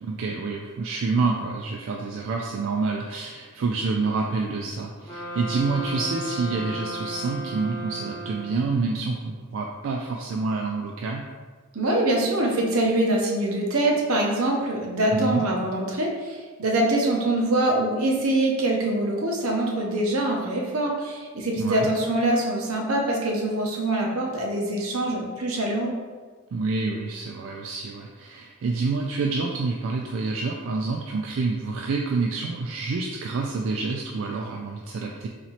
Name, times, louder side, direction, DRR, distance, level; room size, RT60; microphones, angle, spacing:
voice 1, 0.0-11.3 15.1-15.5 21.6-21.9 26.5-35.3, right 3 dB, 65° right, 1 dB, 0.3 m, -28 dB
sound 1, 5.0-8.9, right 1 dB, 25° left, 0.9 m, -35 dB
voice 2, 11.7-25.9, right 1 dB, 85° right, 0 dB, 0.7 m, -24 dB
4.0 x 2.9 x 2.9 m, 1.4 s
head